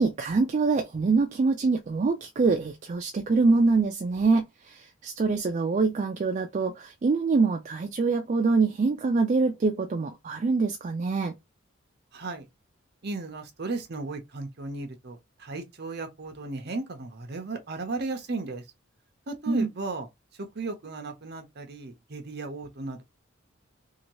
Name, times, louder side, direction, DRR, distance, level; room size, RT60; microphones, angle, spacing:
voice 1, 0.0-11.3 19.5-19.7, right 4 dB, 35° right, 0.3 m, -25 dB
voice 2, 12.1-12.5 13.0-18.7 19.3-20.1 20.4-23.0, right 3 dB, 55° right, 0.7 m, -35 dB
2.8 x 2.6 x 2.8 m
head